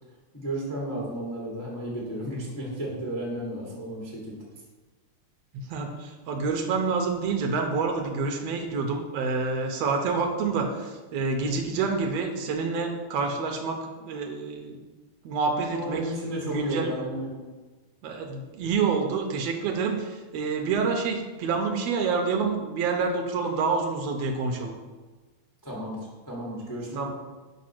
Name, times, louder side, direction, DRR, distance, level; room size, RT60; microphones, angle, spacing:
voice 1, 0.3-4.4 15.7-17.4 25.6-27.1, right 1 dB, 20° left, -5 dB, 0.5 m, -33 dB
voice 2, 5.5-14.8 15.2-16.1 16.4-16.9 18.0-24.8 26.9-27.1, right 4 dB, 75° right, 3 dB, 1.6 m, -28 dB
5.3 x 4.6 x 5.9 m, 1.3 s
omnidirectional pair, 3.5 m